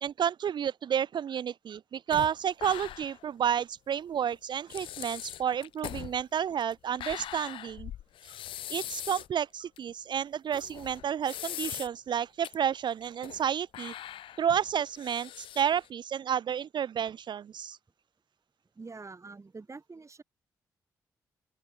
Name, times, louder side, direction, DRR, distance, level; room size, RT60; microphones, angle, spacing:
voice 1, 0.0-7.9 8.2-8.3 8.7-13.9 14.4-17.8, right 9 dB, 60° right, 0.5 m, -31 dB
sound 1, 2.1-3.3 3.6-3.7 4.3-4.4 4.7-9.3 9.8-9.9 10.5-12.1 12.4-12.5 13.0-13.5 13.7-15.9, left 12 dB, 80° left, 2.0 m, -41 dB
voice 2, 18.8-20.2, right 3 dB, 35° right, 1.9 m, -45 dB
open air
supercardioid pair, 45°, 9 cm